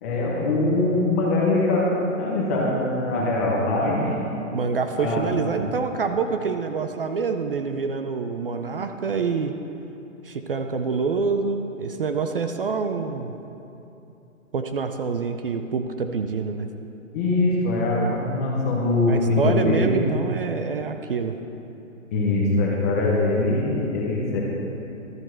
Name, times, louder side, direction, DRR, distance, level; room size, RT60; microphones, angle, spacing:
voice 1, 0.0-4.1 5.0-5.2 17.1-20.0 22.1-24.4, left 2 dB, 10° left, -4 dB, 0.7 m, -22 dB
voice 2, 4.5-9.6 10.2-13.3 14.5-16.7 19.1-21.4, right 5 dB, 45° right, 7 dB, 0.5 m, -26 dB
12.5 x 7.5 x 6.4 m, 2.9 s
hypercardioid pair, 165°, 40 cm